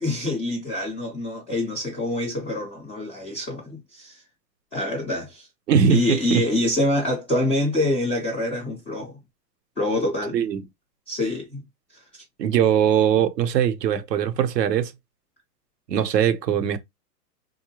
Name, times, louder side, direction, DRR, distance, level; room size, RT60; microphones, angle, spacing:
voice 1, 0.0-4.2 4.7-5.5 5.9-9.1 9.8-10.3 11.1-11.6 11.9-12.0, left 1 dB, 10° left, 0.4 m, -26 dB
voice 2, 5.7-6.0 6.3-6.4 10.3-10.6 12.4-14.9 15.9-16.8, right 8 dB, 80° right, 0.8 m, -20 dB
3.8 x 2.2 x 2.8 m
hypercardioid pair, 150°, 49 cm